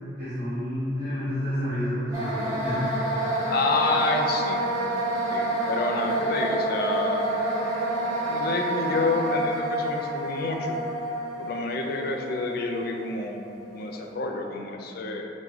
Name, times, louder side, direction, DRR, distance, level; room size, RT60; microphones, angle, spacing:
voice 1, 0.2-2.9, equal, 60° right, -15 dB, 1.3 m, -29 dB
sound 1, 2.1-14.0, right 1 dB, 20° right, 0.9 m, -28 dB
voice 2, 3.5-4.6 5.3-7.3 8.3-10.8 11.4-13.4 13.7-15.2, left 3 dB, 60° left, 2 dB, 0.4 m, -28 dB
4.8 x 2.2 x 3.5 m, 2.7 s
head